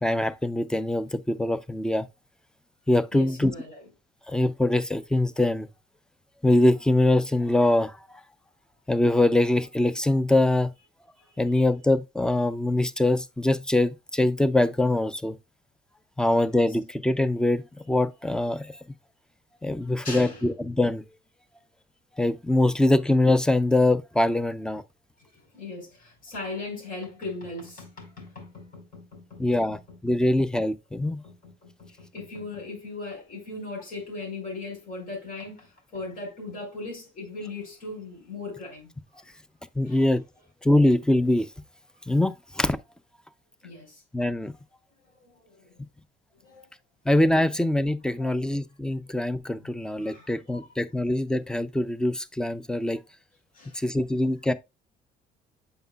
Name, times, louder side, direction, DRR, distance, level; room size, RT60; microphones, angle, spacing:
voice 1, 0.0-2.1 2.9-3.5 4.3-5.7 6.4-8.0 8.9-10.7 11.4-15.4 16.2-18.7 19.6-21.0 22.2-24.8 29.4-31.2 39.8-40.2 40.6-41.5 42.1-42.8 44.1-44.5 47.1-53.0 53.7-54.5, left 1 dB, 5° left, 0.5 m, -23 dB
voice 2, 3.1-3.8 11.2-11.6 20.0-20.4 25.2-30.0 31.0-39.2 39.8-40.1 43.6-44.0 45.0-45.8 46.4-46.7 48.2-48.3 49.6-49.7 50.0-50.7 53.5-53.8, left 3 dB, 55° left, 4.6 m, -39 dB
7.9 x 5.4 x 2.3 m
cardioid pair, 110°, 17 cm